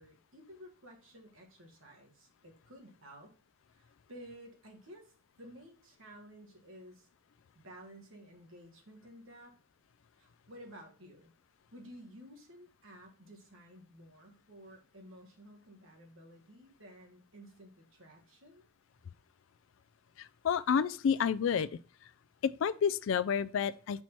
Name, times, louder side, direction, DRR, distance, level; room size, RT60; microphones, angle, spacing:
voice 1, 0.0-3.3 3.7-7.1 7.5-9.5 10.2-11.3 11.7-18.6, equal, 65° right, 1.6 m, -53 dB
voice 2, 20.2-21.7 22.4-24.0, left 7 dB, 60° left, 0.3 m, -30 dB
5.5 x 4.5 x 4.4 m
head